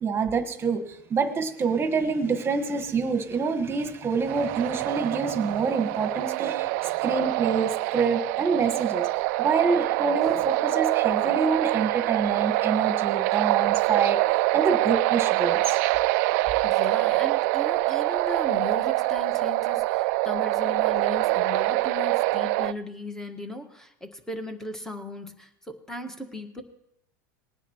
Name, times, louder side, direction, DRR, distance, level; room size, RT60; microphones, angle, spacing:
voice 1, 0.0-6.7 7.0-9.1 9.4-14.2 14.5-15.8, right 5 dB, 25° right, 7 dB, 1.4 m, -26 dB
sound 1, 4.2-22.7, right 20 dB, 60° right, 0.4 m, -25 dB
voice 2, 16.6-26.6, left 1 dB, 5° left, 7 dB, 1.5 m, -37 dB
20.0 x 9.9 x 3.0 m, 0.79 s
supercardioid pair, 115°, 10 cm